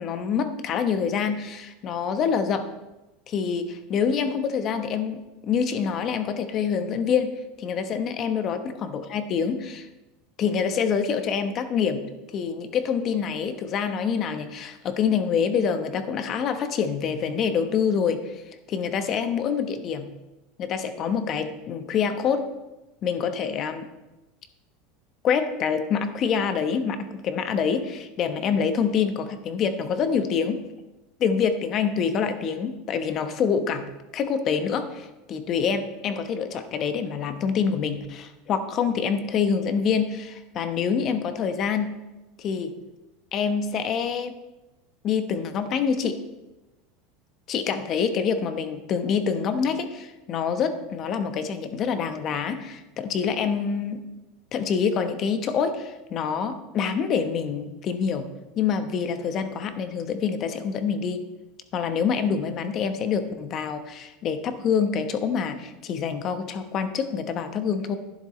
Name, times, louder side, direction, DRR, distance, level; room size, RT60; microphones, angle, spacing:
voice 1, 0.0-2.7 3.3-9.9 10.4-12.0 12.3-18.4 18.7-20.1 20.6-22.5 23.0-23.9 25.2-30.6 31.2-42.0 42.4-42.7 43.3-44.3 45.0-46.2 47.5-54.0 54.5-58.3 58.6-61.2 61.7-68.0, left 6 dB, 40° left, 9 dB, 1.0 m, -26 dB
11.5 x 10.5 x 3.2 m, 1.0 s
supercardioid pair, 130°, 0 cm